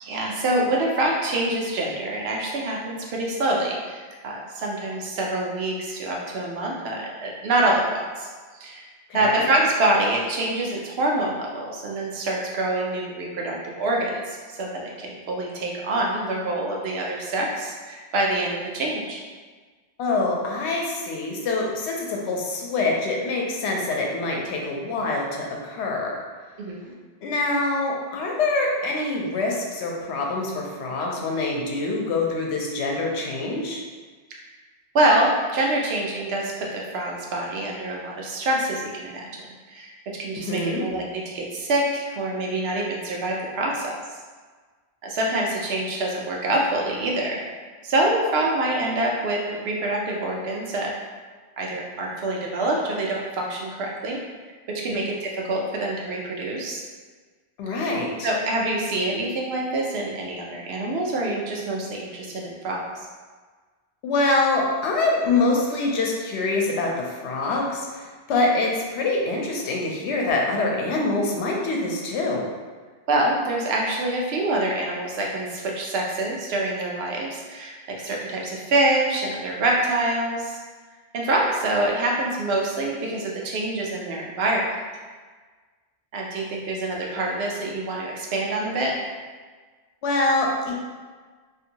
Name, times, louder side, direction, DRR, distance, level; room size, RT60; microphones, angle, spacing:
voice 1, 0.0-8.9 9.1-19.2 26.6-26.9 34.9-39.4 39.7-39.9 40.2-44.0 45.0-47.4 47.8-50.9 51.6-54.2 54.7-56.8 58.2-63.1 68.4-68.5 73.1-80.6 81.1-84.7 86.1-88.9, right 1 dB, 70° right, -2 dB, 0.8 m, -26 dB
voice 2, 9.1-9.4 20.0-26.2 27.2-33.8 40.4-40.8 57.6-58.3 64.0-66.9 67.2-72.4 90.0-90.7, left 2 dB, 80° left, -1 dB, 0.9 m, -25 dB
2.6 x 2.5 x 2.8 m, 1.4 s
omnidirectional pair, 1.1 m